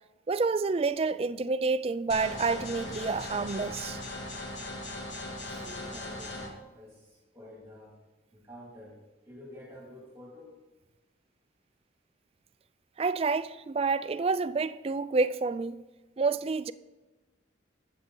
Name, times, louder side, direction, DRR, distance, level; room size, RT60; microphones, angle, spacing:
voice 1, 0.3-4.0 13.0-15.8 16.2-16.7, right 4 dB, 30° right, 0.3 m, -28 dB
sound 1, 2.1-6.5, left 1 dB, 65° left, 1.9 m, -39 dB
voice 2, 5.5-7.9 8.3-10.6, left 1 dB, 15° right, 2.2 m, -49 dB
12.0 x 8.6 x 3.8 m
head